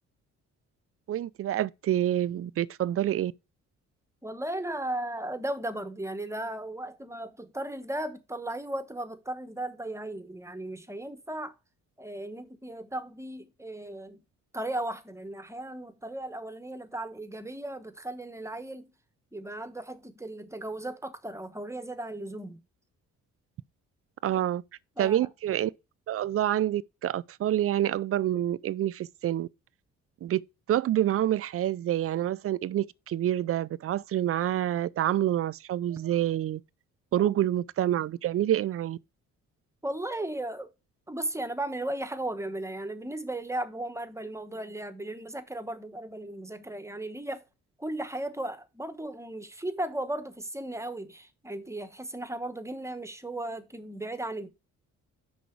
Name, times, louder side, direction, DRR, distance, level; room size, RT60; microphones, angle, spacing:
voice 1, 1.1-3.3 24.2-24.6 25.0-25.7 26.1-29.5 30.2-30.4 30.7-36.6 37.1-39.0, right 12 dB, 50° right, 0.4 m, -27 dB
voice 2, 4.2-11.5 12.0-14.2 14.5-18.9 19.3-22.6 25.0-25.3 37.2-37.4 39.8-40.7 41.1-47.4 47.8-54.5, right 1 dB, 10° right, 1.1 m, -36 dB
6.3 x 5.7 x 4.5 m
cardioid pair, 90°, 30 cm